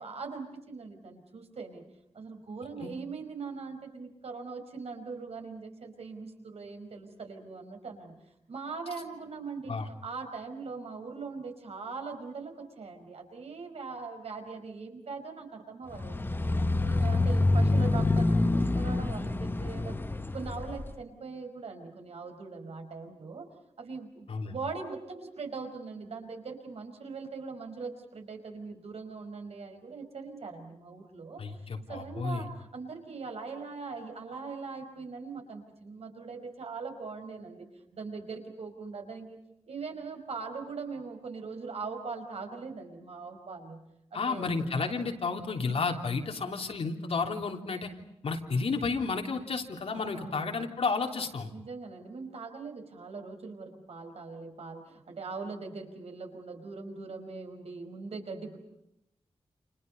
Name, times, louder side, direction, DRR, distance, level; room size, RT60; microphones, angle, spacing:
voice 1, 0.0-1.8 2.1-8.2 8.5-16.4 16.8-20.1 20.3-23.5 23.8-39.4 39.7-44.6 49.9-50.7 51.5-58.6, right 4 dB, 65° right, 5 dB, 5.2 m, -41 dB
sound 1, 15.9-20.9, left 2 dB, 20° left, 1.2 m, -27 dB
voice 2, 31.4-32.4 44.1-47.9 48.2-51.5, left 4 dB, 65° left, 3 dB, 3.3 m, -32 dB
29.5 x 29.0 x 5.4 m, 0.81 s
wide cardioid pair, 175°, 11 cm